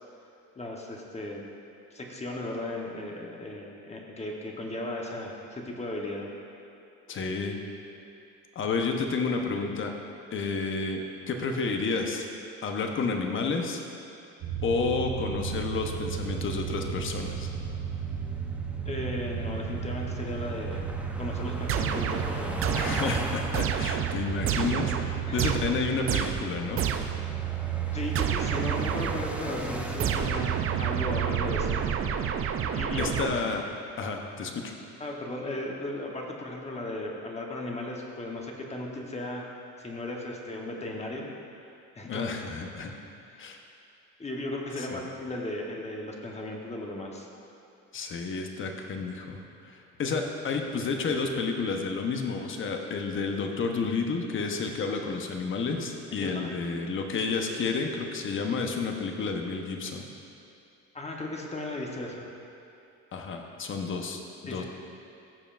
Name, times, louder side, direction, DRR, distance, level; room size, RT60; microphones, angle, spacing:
voice 1, 0.6-1.4 1.9-6.3 18.8-20.9 21.2-22.8 25.3-25.4 27.9-31.8 32.7-33.1 35.0-39.5 39.8-41.3 41.9-42.3 43.3-43.4 44.2-47.3 56.2-56.5 60.9-62.3 64.5-64.6, left 1 dB, 20° left, 0 dB, 1.0 m, -36 dB
voice 2, 7.1-7.6 8.5-9.9 10.3-12.3 12.6-13.8 14.6-17.5 22.7-26.8 33.0-33.6 34.0-34.7 42.1-42.9 43.4-43.6 44.8-45.0 47.9-60.1 63.1-64.6, left 4 dB, 40° left, 3 dB, 0.9 m, -30 dB
sound 1, 14.4-31.9, right 8 dB, 80° right, 1.3 m, -34 dB
sound 2, 15.7-33.2, right 1 dB, 5° right, 0.7 m, -41 dB
sound 3, 21.7-27.3 28.1-29.4 30.0-33.7, right 8 dB, 45° right, 0.5 m, -30 dB
14.5 x 6.7 x 2.5 m, 2.6 s
cardioid pair, 115°, 32 cm